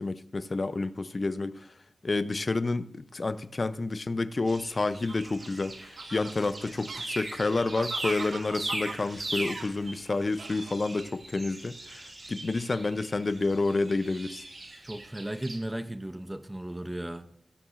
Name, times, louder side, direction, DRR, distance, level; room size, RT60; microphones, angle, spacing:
voice 1, 0.0-1.7 2.0-14.4, left 3 dB, 35° left, 0.5 m, -29 dB
sound 1, 4.5-15.6, right 2 dB, 45° right, 2.9 m, -40 dB
Fowl, 4.9-11.0, right 5 dB, 80° right, 0.5 m, -44 dB
voice 2, 14.8-17.3, right 1 dB, 15° right, 0.5 m, -35 dB
18.5 x 6.9 x 2.4 m
wide cardioid pair, 130°, 0 cm